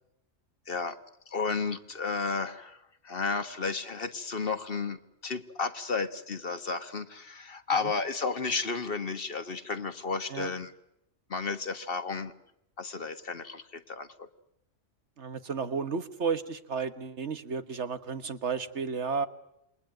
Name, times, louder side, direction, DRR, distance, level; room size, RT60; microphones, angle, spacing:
voice 1, 0.7-1.0 1.3-10.7 11.3-12.3 12.8-14.3, left 4 dB, 50° left, 11 dB, 1.6 m, -33 dB
voice 2, 15.2-19.3, right 5 dB, 70° right, 11 dB, 1.7 m, -32 dB
28.5 x 22.0 x 9.1 m, 0.82 s
omnidirectional pair, 1.2 m